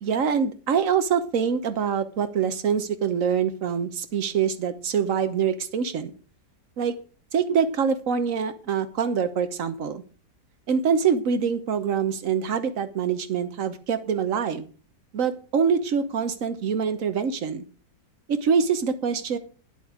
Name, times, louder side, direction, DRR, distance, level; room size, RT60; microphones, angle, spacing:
voice 1, 0.0-6.1 6.8-6.9 7.3-10.0 10.7-14.7 15.1-17.6 18.3-19.4, right 6 dB, 55° right, 10 dB, 1.3 m, -25 dB
10.0 x 8.2 x 5.0 m, 0.38 s
omnidirectional pair, 1.8 m